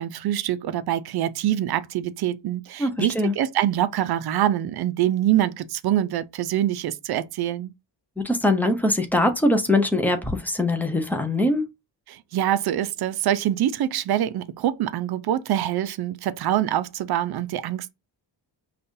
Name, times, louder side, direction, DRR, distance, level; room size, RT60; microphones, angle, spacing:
voice 1, 0.0-7.7 12.1-17.9, right 12 dB, 60° right, 0.5 m, -25 dB
voice 2, 2.8-3.3 8.2-11.6, left 1 dB, 5° left, 0.5 m, -22 dB
5.3 x 2.4 x 2.6 m
wide cardioid pair, 160°, 44 cm